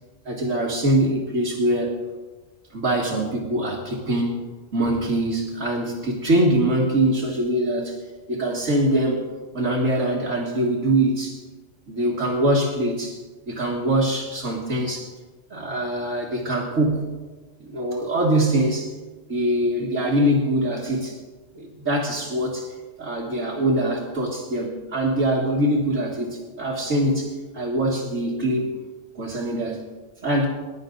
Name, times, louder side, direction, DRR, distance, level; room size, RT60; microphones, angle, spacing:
voice 1, 0.3-2.0 2.7-4.4 4.7-8.0 8.3-11.4 11.9-13.2 13.5-15.1 15.5-17.1 17.6-18.9 19.3-21.2 21.5-28.7 29.1-29.9 30.2-30.5, right 1 dB, 75° right, -6 dB, 2.3 m, -23 dB
21.5 x 11.0 x 3.9 m, 1.2 s
omnidirectional pair, 1.3 m